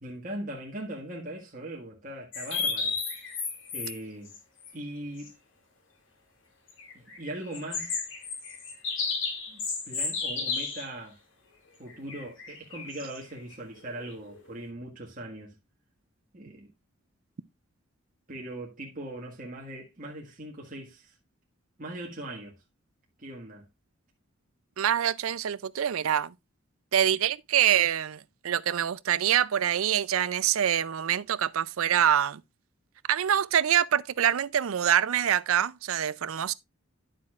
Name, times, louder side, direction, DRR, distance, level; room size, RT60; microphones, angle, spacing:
voice 1, 0.0-3.0 3.7-4.3 4.7-5.4 6.9-8.0 9.5-11.2 11.8-15.6 16.3-16.7 18.3-21.1 21.8-22.6 23.2-23.7, right 1 dB, 40° right, 1.6 m, -40 dB
sound 1, 2.3-4.0 4.2-4.4 4.6-4.7 5.2-5.3 6.7-10.9 11.9-14.5, left 4 dB, 65° left, 2.3 m, -33 dB
voice 2, 24.8-26.3 26.9-32.4 33.1-36.5, right 10 dB, 80° right, 0.4 m, -25 dB
10.5 x 7.5 x 2.4 m
head